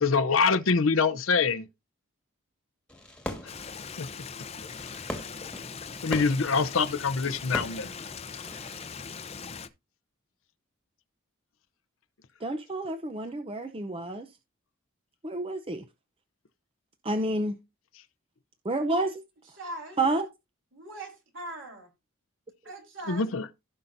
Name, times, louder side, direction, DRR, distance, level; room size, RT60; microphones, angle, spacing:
voice 1, 0.0-1.6 4.0-4.1 6.0-7.9 23.1-23.4, left 5 dB, 70° left, 0.7 m, -24 dB
Fireworks, 2.9-8.9, equal, 5° left, 1.7 m, -41 dB
Stream, 3.5-9.7, left 6 dB, 30° left, 0.7 m, -41 dB
voice 2, 12.4-14.2 15.2-15.8 17.0-17.6 18.6-19.2 20.0-20.3, right 2 dB, 25° right, 0.6 m, -29 dB
voice 3, 19.4-20.0 20.7-21.9 22.6-23.3, right 2 dB, 60° right, 3.9 m, -41 dB
16.0 x 5.6 x 2.6 m
head